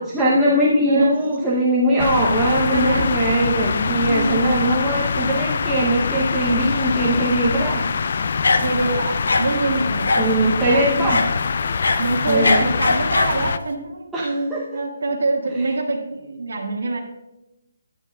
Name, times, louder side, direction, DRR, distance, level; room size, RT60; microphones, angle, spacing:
voice 1, 0.1-7.8 10.2-11.2 12.3-12.7 14.1-14.6, right 1 dB, 5° right, -8 dB, 0.7 m, -20 dB
sound 1, 2.0-13.6, left 5 dB, 45° left, 0.3 m, -24 dB
voice 2, 2.7-3.1 4.1-4.6 8.6-11.2 12.0-17.0, right 3 dB, 85° right, -3 dB, 1.4 m, -25 dB
sound 2, 8.4-8.9 9.3-9.5 10.1-10.4 11.1-11.3 11.7-13.4, left 3 dB, 75° left, 1.0 m, -20 dB
11.5 x 9.9 x 2.3 m, 0.94 s
hypercardioid pair, 175°, 0 cm